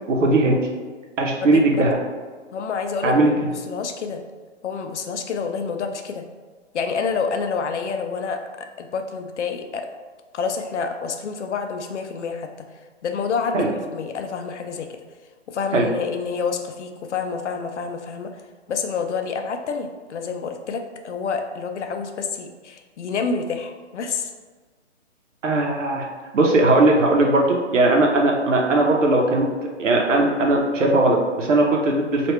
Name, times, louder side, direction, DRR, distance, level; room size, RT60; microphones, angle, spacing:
voice 1, 0.1-0.6 1.2-2.0 3.0-3.3 13.5-13.7 15.7-15.9 25.4-26.1 26.3-29.5 29.8-32.3, right 2 dB, 85° right, 0 dB, 0.8 m, -18 dB
voice 2, 1.4-1.9 2.5-4.2 4.6-6.2 6.7-8.4 8.8-9.9 10.3-12.7 13.0-14.9 15.5-18.3 18.7-24.3, left 5 dB, 70° left, 6 dB, 0.5 m, -28 dB
3.0 x 2.5 x 3.1 m, 1.4 s
hypercardioid pair, 165°, 36 cm